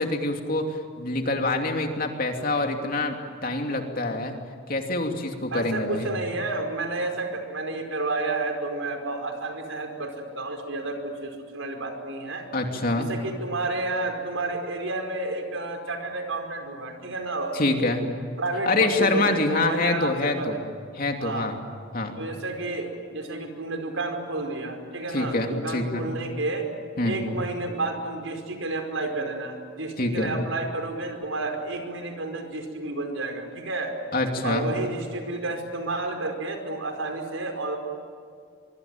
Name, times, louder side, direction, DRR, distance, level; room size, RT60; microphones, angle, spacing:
voice 1, 0.0-3.2 3.4-4.3 4.7-6.1 12.5-13.1 17.5-18.0 18.7-20.6 20.9-21.6 21.9-22.2 25.1-26.0 27.0-27.2 30.0-30.4 34.1-34.7, left 2 dB, 45° left, 3 dB, 2.9 m, -25 dB
voice 2, 5.5-12.4 13.0-17.5 18.4-20.6 21.2-21.5 22.2-26.6 27.0-33.9 34.4-37.8, right 2 dB, 85° right, 4 dB, 5.0 m, -31 dB
24.5 x 24.0 x 9.1 m, 2.1 s
head